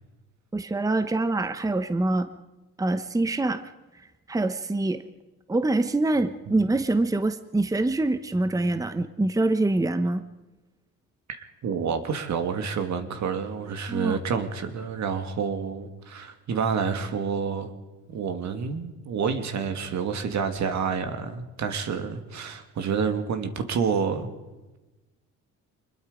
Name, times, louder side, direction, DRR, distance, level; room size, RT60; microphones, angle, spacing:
voice 1, 0.5-2.3 2.8-3.6 4.3-5.0 5.5-10.2 13.9-14.2, right 2 dB, 10° right, 11 dB, 0.9 m, -25 dB
voice 2, 11.3-17.7 18.1-24.3, right 6 dB, 65° right, 7 dB, 2.4 m, -28 dB
25.0 x 21.0 x 5.1 m, 1.1 s
cardioid pair, 90°, 30 cm